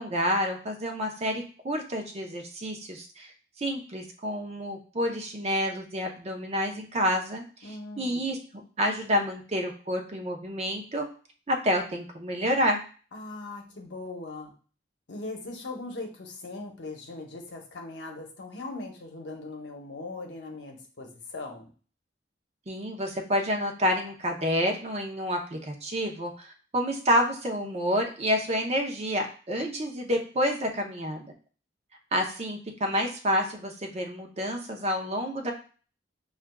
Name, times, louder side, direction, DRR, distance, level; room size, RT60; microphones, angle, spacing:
voice 1, 0.0-3.3 3.6-8.4 8.8-11.1 11.5-12.8 22.7-31.3 32.1-35.5, equal, 35° right, 3 dB, 0.6 m, -29 dB
voice 2, 7.6-8.3 13.1-14.5 15.1-21.7, left 2 dB, 70° left, 2 dB, 0.8 m, -40 dB
5.8 x 2.4 x 2.2 m, 0.38 s
head